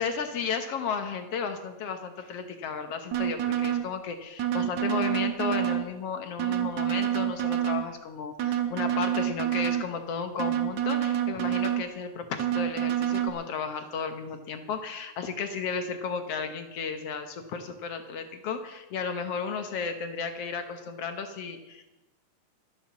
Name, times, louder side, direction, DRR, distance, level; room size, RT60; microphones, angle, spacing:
voice 1, 0.0-21.8, left 6 dB, 60° left, 7 dB, 1.8 m, -34 dB
sound 1, 3.1-3.9 4.4-5.9 6.4-7.9 8.4-9.9 10.4-11.9 12.4-13.3, right 11 dB, 65° right, 2.4 m, -27 dB
12.5 x 11.5 x 7.2 m, 1.0 s
omnidirectional pair, 3.6 m